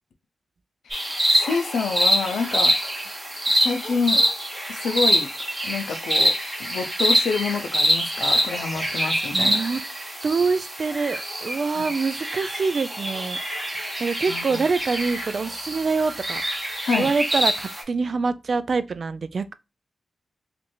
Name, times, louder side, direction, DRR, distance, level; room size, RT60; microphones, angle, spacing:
voice 1, 0.8-2.7 3.5-4.2 4.7-5.3 5.6-6.3 6.7-9.6 11.7-11.9 14.3-14.6 16.8-17.1, left 5 dB, 90° left, 0.5 m, -27 dB
sound 1, 0.9-17.8, equal, 20° right, 1.4 m, -25 dB
voice 2, 9.3-9.8 10.2-13.4 14.0-16.4 17.0-19.5, right 4 dB, 60° right, 0.3 m, -25 dB
3.0 x 2.5 x 3.0 m
cardioid pair, 60°, 0 cm